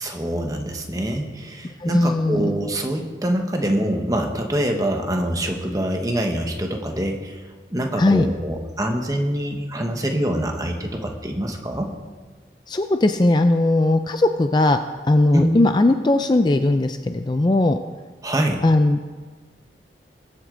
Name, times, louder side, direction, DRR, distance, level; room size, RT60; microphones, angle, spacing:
voice 1, 0.0-11.9 15.3-15.5 18.2-18.6, right 1 dB, 20° right, 3 dB, 1.2 m, -25 dB
voice 2, 1.8-2.5 8.0-8.3 12.7-14.8 15.0-17.8 18.6-19.0, left 2 dB, 25° left, 8 dB, 0.4 m, -18 dB
21.0 x 8.0 x 3.8 m, 1.4 s
head